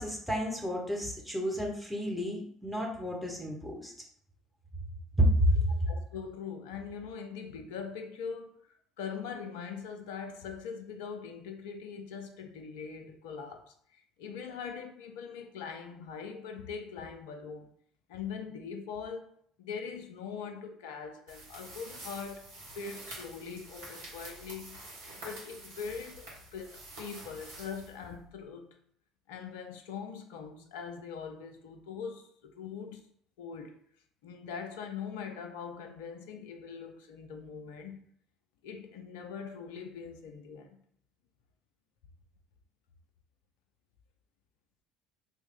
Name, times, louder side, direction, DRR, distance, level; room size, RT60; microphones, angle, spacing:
voice 1, 0.0-3.9 5.2-5.7, equal, ahead, 1.1 m, -30 dB
voice 2, 5.9-17.7 18.1-19.3 19.6-24.8 25.2-28.8 29.3-33.0 33.4-33.8 34.2-38.0 38.6-40.8, left 6 dB, 65° left, 0.5 m, -42 dB
sound 1, 21.3-28.4, right 1 dB, 70° right, 1.3 m, -48 dB
3.4 x 2.5 x 3.8 m
figure-of-eight pair, 55°, 0 cm